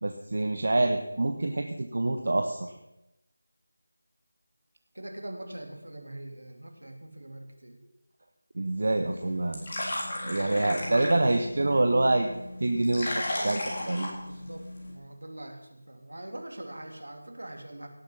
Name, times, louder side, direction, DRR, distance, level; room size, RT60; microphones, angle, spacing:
voice 1, 0.0-2.6 8.5-9.7 10.2-12.3 12.6-14.1, right 2 dB, 50° right, 5 dB, 1.3 m, -26 dB
voice 2, 4.9-7.8 10.4-11.4 14.2-17.9, right 1 dB, 70° right, 4 dB, 2.9 m, -42 dB
sound 1, 9.0-14.9, left 1 dB, 30° left, 3.8 m, -36 dB
17.5 x 8.1 x 7.2 m, 0.91 s
figure-of-eight pair, 165°, 0 cm